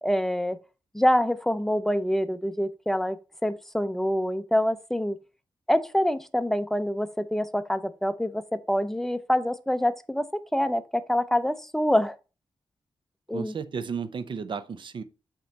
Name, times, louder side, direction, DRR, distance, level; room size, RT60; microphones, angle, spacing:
voice 1, 0.0-0.6 0.9-5.2 5.7-12.2 13.3-13.5, equal, 5° left, 0.5 m, -26 dB
voice 2, 13.3-15.0, right 6 dB, 55° right, 0.6 m, -33 dB
7.5 x 3.0 x 5.2 m
wide cardioid pair, 135°, 10 cm